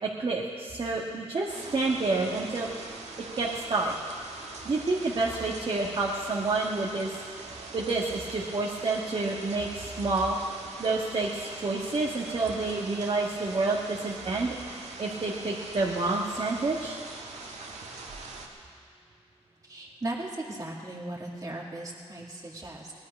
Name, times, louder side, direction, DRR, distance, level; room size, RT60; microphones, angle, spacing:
voice 1, 0.0-2.7 3.3-3.9 4.6-7.1 7.7-10.4 10.8-14.5 15.0-17.0, right 3 dB, 50° right, -4 dB, 1.5 m, -29 dB
sound 1, 1.5-18.5, right 3 dB, 80° right, 1.6 m, -43 dB
voice 2, 19.6-22.9, right 1 dB, 30° right, -3 dB, 2.0 m, -37 dB
18.5 x 11.5 x 5.3 m, 2.2 s
cardioid pair, 90°, 11 cm